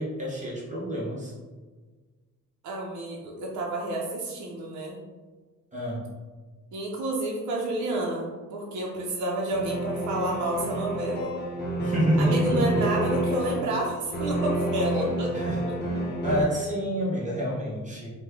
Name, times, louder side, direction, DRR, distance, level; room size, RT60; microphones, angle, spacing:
voice 1, 0.0-1.3 5.7-6.1 11.8-12.8 15.3-15.6 16.2-18.1, equal, 25° right, -5 dB, 1.0 m, -28 dB
voice 2, 2.6-5.0 6.7-11.3 12.2-15.3, right 1 dB, 70° right, -2 dB, 0.7 m, -30 dB
sound 1, 9.5-16.4, right 1 dB, 35° left, 0.8 m, -29 dB
3.1 x 2.3 x 3.5 m, 1.4 s
cardioid pair, 90°, 30 cm